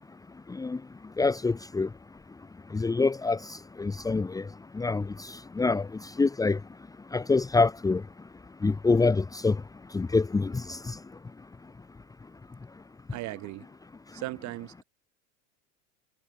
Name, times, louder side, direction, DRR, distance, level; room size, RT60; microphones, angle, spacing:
voice 1, 1.2-1.9 2.7-3.4 3.8-4.4 4.8-5.0 5.6-5.9 6.2-6.6 7.1-8.0 8.6-9.5 9.9-10.8, left 3 dB, 10° left, 1.6 m, -25 dB
voice 2, 13.1-13.7 14.1-14.8, right 19 dB, 45° right, 6.7 m, -37 dB
supercardioid pair, 135°, 41 cm